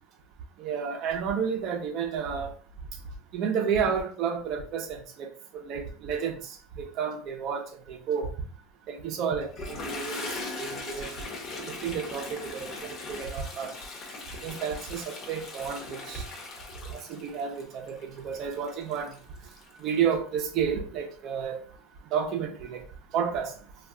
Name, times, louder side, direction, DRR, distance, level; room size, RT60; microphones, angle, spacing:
voice 1, 0.6-2.5 3.3-8.3 8.9-11.1 11.6-13.7 14.4-16.2 16.9-19.2 19.8-21.6 22.1-22.8 23.1-23.5, right 7 dB, 45° right, 0.6 m, -31 dB
Toilet flush, 9.4-20.0, left 3 dB, 35° left, 0.8 m, -40 dB
2.3 x 2.2 x 3.6 m
supercardioid pair, 140°, 0 cm